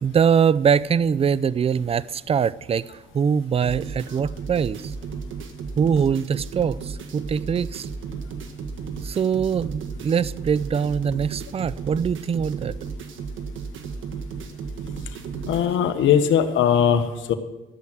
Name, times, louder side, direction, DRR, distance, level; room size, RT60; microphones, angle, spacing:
voice 1, 0.0-4.9 5.8-7.9 9.0-12.7, right 7 dB, 30° right, 0.4 m, -23 dB
sound 1, 3.6-15.6, right 5 dB, 75° right, 1.5 m, -34 dB
voice 2, 15.5-17.3, left 8 dB, 75° left, 1.3 m, -20 dB
14.0 x 7.4 x 7.9 m
cardioid pair, 90°, 20 cm